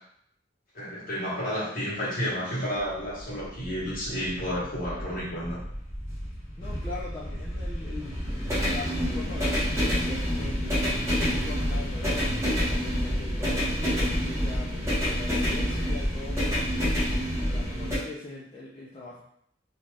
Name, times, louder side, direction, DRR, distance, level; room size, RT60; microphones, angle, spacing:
voice 1, 0.7-5.6, equal, 50° left, -7 dB, 1.2 m, -31 dB
sound 1, 2.8-18.0, equal, 15° right, 0.9 m, -28 dB
voice 2, 6.6-8.2 8.6-10.8 11.3-16.9 17.4-19.2, left 3 dB, 25° left, -7 dB, 0.5 m, -42 dB
2.7 x 2.3 x 3.2 m, 0.69 s
head